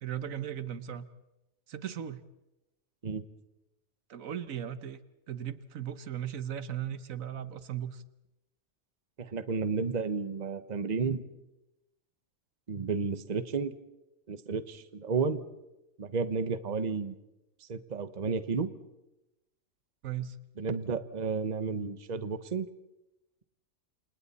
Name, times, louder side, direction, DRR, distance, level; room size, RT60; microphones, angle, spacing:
voice 1, 0.0-1.1 1.7-2.2 4.1-5.0 5.3-8.0 20.0-20.4, right 10 dB, 75° right, 14 dB, 1.4 m, -37 dB
voice 2, 9.2-11.2 12.7-13.7 14.3-15.4 16.0-17.2 17.7-18.7 20.6-22.7, right 5 dB, 35° right, 12 dB, 1.0 m, -32 dB
29.0 x 27.5 x 4.2 m, 0.94 s
omnidirectional pair, 1.4 m